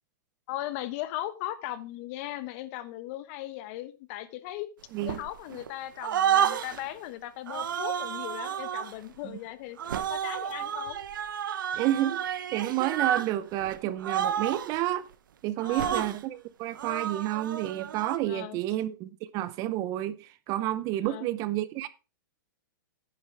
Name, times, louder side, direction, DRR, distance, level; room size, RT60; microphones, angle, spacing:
voice 1, 0.5-4.7 5.0-9.8 10.1-11.0 15.6-16.0 18.3-18.6 21.0-21.3, left 14 dB, 45° left, 1.1 m, -38 dB
sound 1, 5.0-5.7 6.0-6.9 7.5-8.9 9.8-13.3 13.6-13.8 14.0-14.8 15.6-16.2 16.8-18.2, right 9 dB, 80° right, 1.1 m, -31 dB
voice 2, 11.7-15.1 15.4-21.9, right 14 dB, 35° right, 0.6 m, -30 dB
9.9 x 9.5 x 3.4 m
hypercardioid pair, 145°, 11 cm